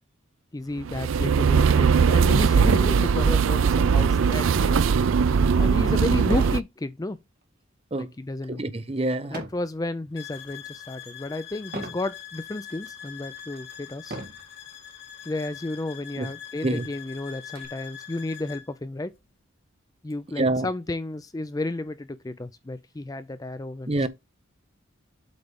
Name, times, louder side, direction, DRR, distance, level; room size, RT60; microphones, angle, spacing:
voice 1, 0.5-4.9 5.6-7.2 7.9-8.6 9.2-14.2 15.3-19.1 20.0-23.9, left 2 dB, 20° left, 0.4 m, -32 dB
sound 1, 0.8-6.6, right 6 dB, 70° right, 0.4 m, -20 dB
sound 2, 6.3-6.7 7.1-7.4 9.3-9.7 10.3-10.7 11.7-12.1 12.8-12.9 14.0-14.5 15.5-15.7 16.0-16.1 16.5-17.6, right 2 dB, 45° right, 1.8 m, -38 dB
voice 2, 8.5-9.4 16.2-16.3 16.6-16.9 20.4-20.7 23.9-24.1, right 2 dB, 30° right, 0.7 m, -26 dB
sound 3, 10.2-18.7, left 9 dB, 60° left, 2.2 m, -43 dB
8.0 x 3.3 x 5.2 m
head